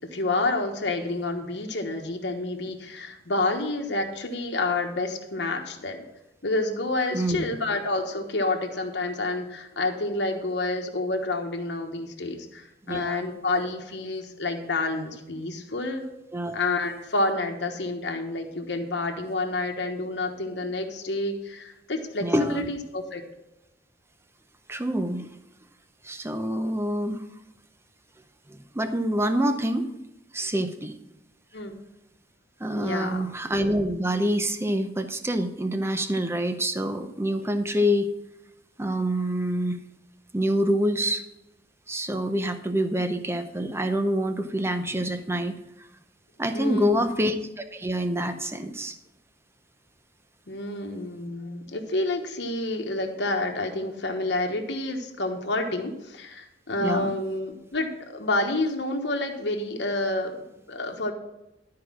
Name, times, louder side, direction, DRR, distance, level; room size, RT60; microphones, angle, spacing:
voice 1, 0.1-6.0 6.4-16.0 16.5-23.2 31.5-31.8 32.8-33.2 46.5-47.0 50.5-61.1, left 2 dB, 70° left, 3 dB, 1.2 m, -29 dB
voice 2, 7.1-7.5 12.9-13.2 16.3-16.5 22.2-22.7 24.7-25.3 26.0-27.3 28.5-29.9 30.3-31.0 32.6-38.1 38.8-39.8 40.3-41.2 41.9-45.5 46.4-49.0 56.8-57.1, equal, 15° right, 8 dB, 0.7 m, -26 dB
12.0 x 4.8 x 6.1 m, 0.91 s
head